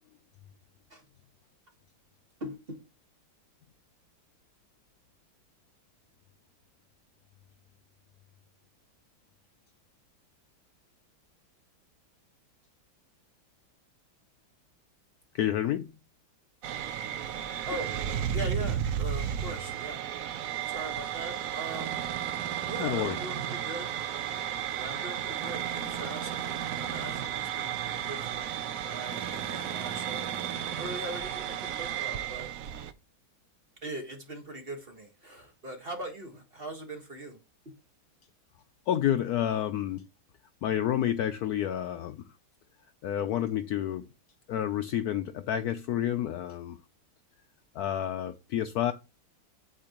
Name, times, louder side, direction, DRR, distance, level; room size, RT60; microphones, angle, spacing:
voice 1, 2.4-2.8 17.7-17.9 18.3-20.0 20.7-22.0 22.7-23.9 24.7-28.5 28.9-30.2 30.7-32.5 33.8-37.4, right 1 dB, 30° right, 1.6 m, -40 dB
voice 2, 15.3-15.9 22.8-23.2 38.9-40.1 40.6-42.2 43.0-44.0 44.5-46.8 47.8-48.9, left 11 dB, 90° left, 0.8 m, -29 dB
sound 1, 16.6-32.9, right 9 dB, 80° right, 0.7 m, -34 dB
sound 2, 21.7-23.6 25.4-27.3 29.1-31.0, right 7 dB, 60° right, 1.2 m, -41 dB
8.5 x 7.2 x 3.0 m
omnidirectional pair, 2.2 m